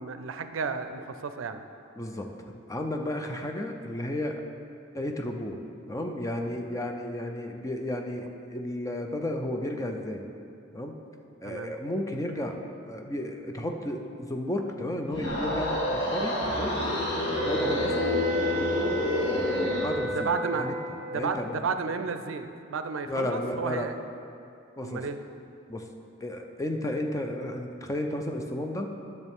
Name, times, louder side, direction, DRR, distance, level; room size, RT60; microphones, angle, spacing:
voice 1, 0.0-1.6 11.4-11.7 20.1-20.7 21.1-23.9 24.8-25.2, right 5 dB, 80° right, 9 dB, 0.5 m, -32 dB
voice 2, 2.0-2.3 2.7-4.4 4.9-5.6 5.9-10.2 10.7-11.0 11.4-12.6 12.9-16.8 17.5-18.0 19.8-20.3 20.6-20.7 21.1-21.6 23.1-23.9 24.8-25.0 25.7-25.9 26.2-28.9, left 1 dB, 15° left, 3 dB, 0.5 m, -32 dB
sound 1, 15.0-20.0, left 1 dB, 60° left, 1.8 m, -28 dB
sound 2, 17.3-21.2, equal, 40° right, 1.0 m, -33 dB
11.0 x 6.5 x 3.6 m, 2.6 s
head